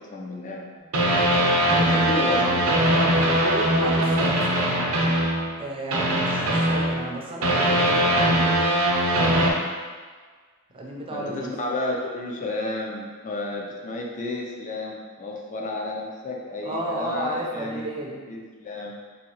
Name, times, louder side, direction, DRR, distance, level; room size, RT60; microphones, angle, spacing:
voice 1, 0.1-0.7 1.8-2.6 11.1-17.9 18.3-19.0, left 2 dB, 35° left, 0 dB, 0.5 m, -31 dB
sound 1, 0.9-5.6 5.9-9.5, right 1 dB, 80° right, 0.6 m, -21 dB
voice 2, 1.6-2.6 3.0-4.9 5.6-8.3 10.7-11.5 16.6-18.2, right 1 dB, 25° right, -2 dB, 0.5 m, -33 dB
4.1 x 2.7 x 2.9 m, 1.5 s
head